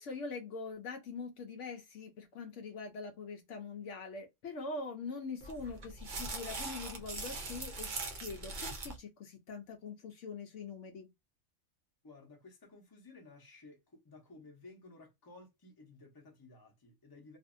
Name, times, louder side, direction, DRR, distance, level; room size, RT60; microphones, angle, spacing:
voice 1, 0.0-11.1, left 4 dB, 65° left, 0.9 m, -43 dB
sound 1, 5.4-9.0, right 3 dB, 50° right, 0.6 m, -41 dB
voice 2, 12.0-17.4, left 3 dB, 20° left, 0.7 m, -56 dB
2.5 x 2.5 x 2.5 m
omnidirectional pair, 1.4 m